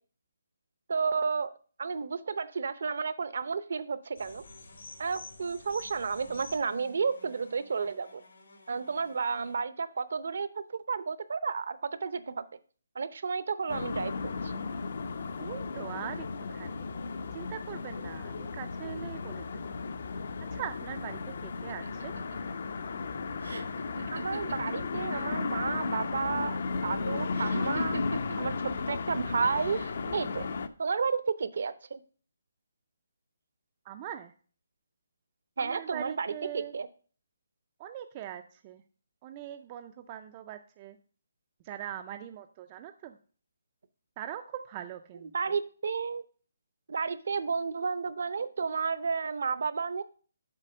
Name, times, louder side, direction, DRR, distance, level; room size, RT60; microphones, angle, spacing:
voice 1, 0.9-1.5 1.8-4.4 5.0-8.2 8.7-12.4 12.9-14.1 14.4-14.5 24.1-28.0 28.4-28.5 28.9-29.8 30.1-30.5 30.8-32.0 35.6-36.9 45.3-46.2 46.9-50.0, right 5 dB, 55° right, 14 dB, 0.6 m, -32 dB
sound 1, 4.2-9.6, left 2 dB, 85° left, 2.7 m, -50 dB
sound 2, 13.7-30.7, left 4 dB, 50° left, 0.6 m, -35 dB
voice 2, 15.4-16.9 17.3-19.8 20.4-22.1 33.8-34.3 35.6-36.7 37.8-38.8 39.2-41.0 41.6-43.2 44.2-45.6, right 11 dB, 20° right, 7 dB, 0.3 m, -42 dB
sound 3, 21.7-25.3 25.6-26.2 27.3-28.6 29.5-30.1, right 2 dB, 90° right, 1.5 m, -41 dB
7.5 x 4.2 x 6.4 m, 0.40 s
hypercardioid pair, 170°, 0 cm